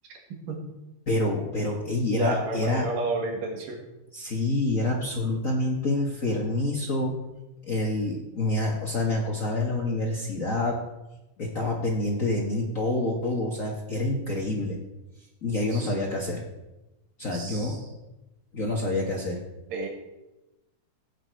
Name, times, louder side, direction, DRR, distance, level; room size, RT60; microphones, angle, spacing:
voice 1, 1.1-2.9 4.1-7.2 7.6-10.8 11.4-14.8 15.4-16.4 17.2-17.8 18.5-19.4, left 2 dB, 70° left, -1 dB, 0.7 m, -27 dB
voice 2, 2.2-3.8 15.7-15.9 17.3-17.8 19.7-19.9, right 3 dB, 90° right, 2 dB, 3.6 m, -31 dB
16.0 x 8.5 x 4.6 m, 0.99 s
omnidirectional pair, 3.8 m